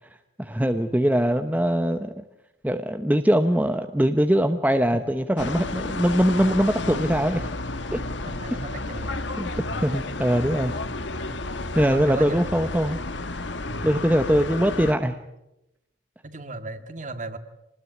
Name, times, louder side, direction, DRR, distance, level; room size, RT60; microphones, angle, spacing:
voice 1, 0.4-2.2 2.6-7.5 7.9-8.0 9.4-10.7 11.7-13.0 13.8-15.2, equal, 10° right, 7 dB, 0.9 m, -22 dB
sound 1, 5.4-14.9, left 2 dB, 70° left, 1.6 m, -31 dB
voice 2, 8.3-9.2 9.6-9.9 11.9-12.4 13.7-13.9 16.2-17.4, right 2 dB, 40° right, 9 dB, 1.9 m, -36 dB
26.0 x 20.0 x 9.3 m, 0.90 s
head